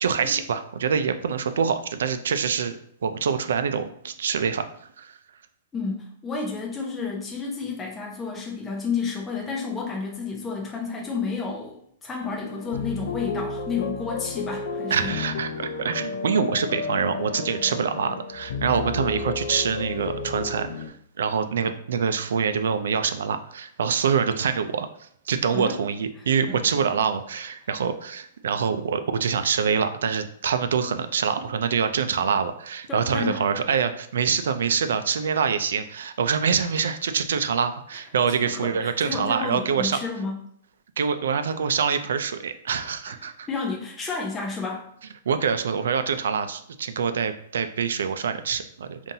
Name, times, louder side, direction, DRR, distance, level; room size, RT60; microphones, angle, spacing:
voice 1, 0.0-2.8 3.0-4.6 5.0-5.1 14.9-20.9 21.2-24.9 25.3-40.0 41.0-43.5 45.3-49.0, right 6 dB, 90° right, 9 dB, 0.4 m, -25 dB
voice 2, 5.7-15.2 25.5-25.8 26.5-26.6 32.9-33.4 38.4-40.4 43.1-43.2 43.5-44.9, left 4 dB, 10° left, -2 dB, 0.5 m, -31 dB
sound 1, 12.2-20.9, left 5 dB, 60° left, 0.4 m, -32 dB
5.4 x 2.5 x 2.7 m, 0.67 s
hypercardioid pair, 175°, 0 cm